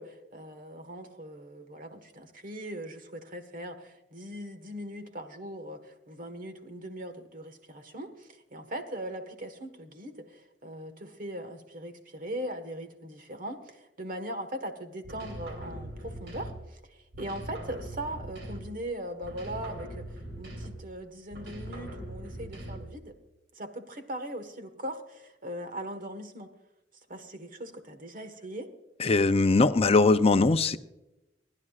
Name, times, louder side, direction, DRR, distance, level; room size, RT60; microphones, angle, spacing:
voice 1, 0.0-20.0 20.4-23.1 23.5-26.5 27.1-28.7, right 1 dB, 50° right, 8 dB, 1.5 m, -40 dB
sound 1, 15.0-16.8 17.1-18.9 19.2-20.9 21.3-23.0, right 1 dB, 75° right, 3.4 m, -41 dB
voice 2, 29.0-30.8, left 3 dB, 35° left, 11 dB, 0.5 m, -21 dB
27.0 x 11.0 x 2.4 m, 0.96 s
head